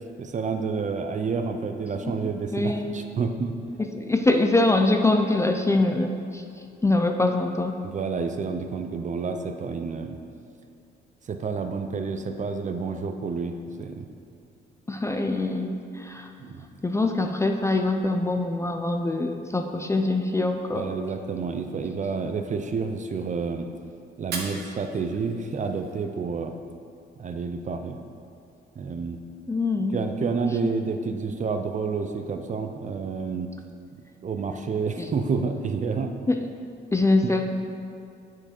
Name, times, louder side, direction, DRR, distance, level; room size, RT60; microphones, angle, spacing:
voice 1, 0.2-3.5 7.8-10.2 11.3-14.1 16.4-16.7 20.7-23.7 24.2-26.5 27.2-28.0 28.8-29.2 29.9-33.5 34.2-36.1 37.2-37.4, right 5 dB, 40° right, 6 dB, 0.5 m, -29 dB
voice 2, 2.5-2.9 3.9-6.4 6.8-7.8 14.9-16.3 16.8-20.9 29.5-30.0 30.6-30.7 35.0-35.1 36.3-36.5 36.9-37.5, left 2 dB, 15° left, 4 dB, 0.4 m, -24 dB
Fire, 24.1-26.2, right 4 dB, 55° right, 1.1 m, -39 dB
7.6 x 4.6 x 4.4 m, 2.4 s
cardioid pair, 90°, 20 cm